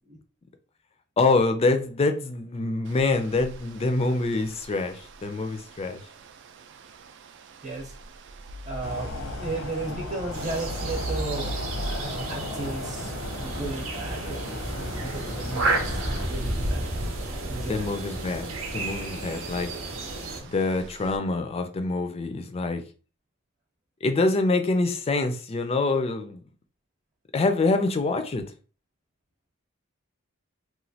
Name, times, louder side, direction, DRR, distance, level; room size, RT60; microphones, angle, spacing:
voice 1, 1.2-6.0 17.7-19.7 20.4-22.8 24.0-26.4 27.3-28.5, left 3 dB, 30° left, 0.4 m, -25 dB
sound 1, 2.8-21.2, right 1 dB, 60° right, 0.3 m, -42 dB
voice 2, 7.6-7.9 8.6-13.1 13.4-16.9 17.5-18.0, right 3 dB, 35° right, 0.8 m, -35 dB
sound 2, 8.8-16.3, left 2 dB, 85° left, 0.8 m, -36 dB
sound 3, 10.3-20.4, right 2 dB, 85° right, 0.7 m, -32 dB
3.0 x 2.2 x 2.7 m
head